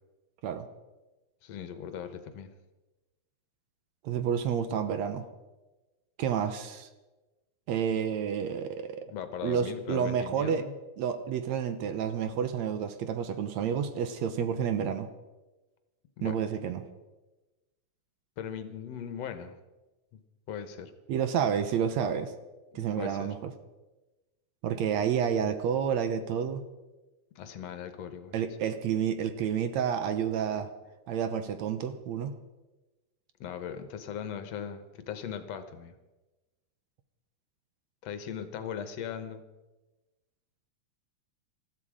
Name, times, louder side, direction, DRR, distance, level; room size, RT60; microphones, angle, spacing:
voice 1, 1.4-2.5 9.0-10.7 16.2-16.4 18.4-19.6 20.1-20.2 20.5-20.9 22.7-23.3 27.4-28.4 33.4-35.9 38.0-39.4, left 8 dB, 65° left, 10 dB, 2.0 m, -39 dB
voice 2, 4.0-5.3 6.2-6.9 7.7-9.1 9.4-10.6 11.0-15.1 16.2-16.9 21.1-22.3 22.8-23.5 24.6-26.6 28.3-30.7 31.1-32.3, right 8 dB, 70° right, 10 dB, 2.1 m, -30 dB
20.0 x 14.0 x 5.0 m, 1.1 s
omnidirectional pair, 3.4 m